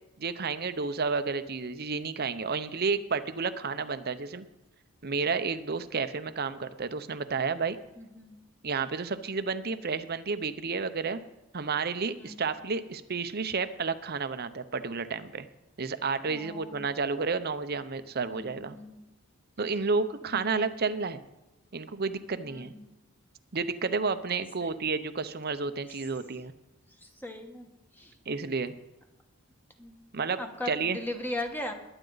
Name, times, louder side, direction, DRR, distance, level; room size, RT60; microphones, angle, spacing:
voice 1, 0.2-4.5 5.0-7.8 8.6-11.2 11.5-15.5 15.8-18.8 19.6-21.2 21.7-22.7 23.5-26.5 28.3-28.7 30.1-30.4 30.7-31.0, right 4 dB, 45° right, 11 dB, 0.7 m, -31 dB
voice 2, 8.0-8.4 12.2-12.5 16.3-16.9 18.3-19.0 20.2-20.4 22.5-22.9 24.6-24.7 25.9-26.2 26.9-27.7 27.9-28.2 29.8-30.1 30.4-31.7, left 1 dB, 10° left, 4 dB, 1.2 m, -39 dB
21.0 x 9.0 x 4.0 m, 1.0 s
head